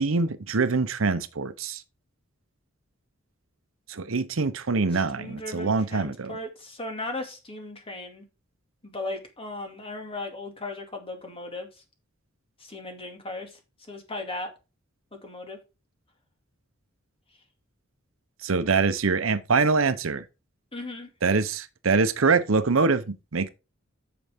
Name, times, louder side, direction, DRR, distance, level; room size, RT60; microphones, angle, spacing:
voice 1, 0.0-1.8 3.9-6.3 18.4-20.2 21.2-23.5, right 4 dB, 75° right, 0.8 m, -24 dB
voice 2, 4.9-8.2 8.8-11.8 12.6-13.6 13.9-14.5 15.1-15.6 20.7-21.1, left 2 dB, 30° left, 2.3 m, -37 dB
9.3 x 6.9 x 3.6 m
head